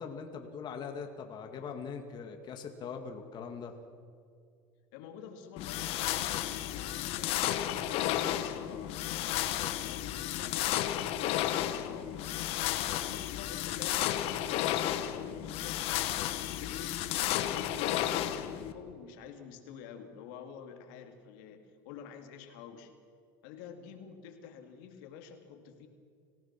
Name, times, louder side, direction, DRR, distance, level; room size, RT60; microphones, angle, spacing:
voice 1, 0.0-3.8, left 6 dB, 40° left, 4 dB, 2.2 m, -41 dB
voice 2, 4.9-7.6 7.9-12.4 12.9-14.1 14.5-15.9 16.4-22.9 23.4-25.9, left 7 dB, 75° left, 5 dB, 2.6 m, -48 dB
sound 1, 5.6-18.7, left 13 dB, 60° left, 1.4 m, -33 dB
26.0 x 17.0 x 6.1 m, 2.2 s
supercardioid pair, 115°, 11 cm